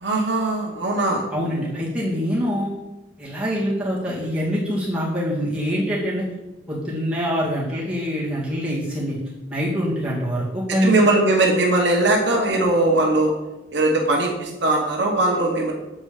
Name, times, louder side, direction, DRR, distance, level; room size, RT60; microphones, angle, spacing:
voice 1, 0.0-1.3 10.7-13.3 13.7-15.7, right 2 dB, 70° right, 0 dB, 1.1 m, -20 dB
voice 2, 1.3-2.7 3.2-6.2 6.7-9.2 9.5-10.9, equal, 5° right, -8 dB, 2.3 m, -24 dB
7.7 x 4.3 x 4.9 m, 1.0 s
head